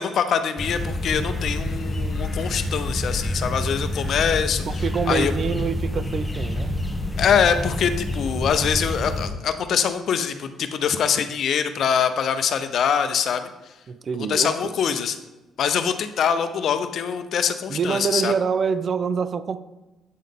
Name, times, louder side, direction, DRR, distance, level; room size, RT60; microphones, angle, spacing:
voice 1, 0.0-5.3 7.2-13.7 14.1-15.2 15.6-18.3, left 7 dB, 65° left, 9 dB, 0.5 m, -24 dB
sound 1, 0.6-9.3, left 1 dB, 5° left, 0.9 m, -27 dB
voice 2, 4.7-6.7 13.9-14.7 17.7-19.6, right 6 dB, 50° right, 14 dB, 0.3 m, -26 dB
8.5 x 3.8 x 3.6 m, 1.1 s
cardioid pair, 85°, 0 cm